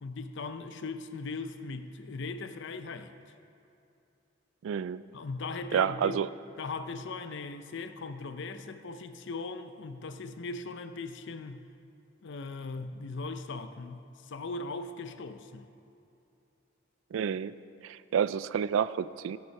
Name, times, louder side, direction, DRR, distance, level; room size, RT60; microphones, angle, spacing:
voice 1, 0.0-3.1 5.1-6.2 6.6-11.6 12.2-15.7, left 3 dB, 65° left, 0.5 m, -39 dB
voice 2, 4.6-5.0 5.7-6.3 17.1-17.6 17.8-19.4, right 8 dB, 70° right, 0.3 m, -29 dB
16.0 x 5.4 x 5.8 m
head